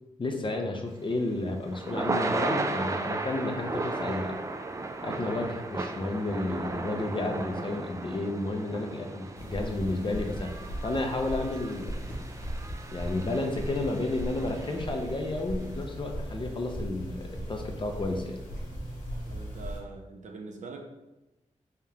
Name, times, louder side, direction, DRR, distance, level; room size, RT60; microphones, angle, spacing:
voice 1, 0.2-4.4 5.0-10.5 10.8-12.0 12.9-18.4, left 2 dB, 40° left, 3 dB, 0.6 m, -32 dB
Thunder / Rain, 1.0-15.2, right 3 dB, 25° right, 0.3 m, -35 dB
sound 1, 9.4-19.8, equal, 80° left, 1.3 m, -38 dB
voice 2, 19.3-20.8, right 4 dB, 70° right, 2 dB, 0.7 m, -43 dB
3.5 x 3.5 x 2.8 m, 0.99 s
cardioid pair, 60°, 13 cm